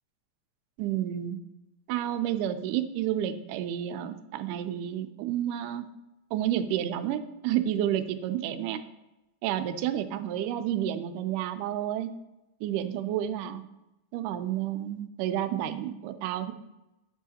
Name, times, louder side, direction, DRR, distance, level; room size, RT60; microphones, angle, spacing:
voice 1, 0.8-1.4 1.9-5.9 6.3-8.8 9.4-12.1 12.6-13.6 14.1-16.5, right 11 dB, 90° right, 10 dB, 2.1 m, -30 dB
8.7 x 6.3 x 2.8 m, 0.97 s
omnidirectional pair, 3.6 m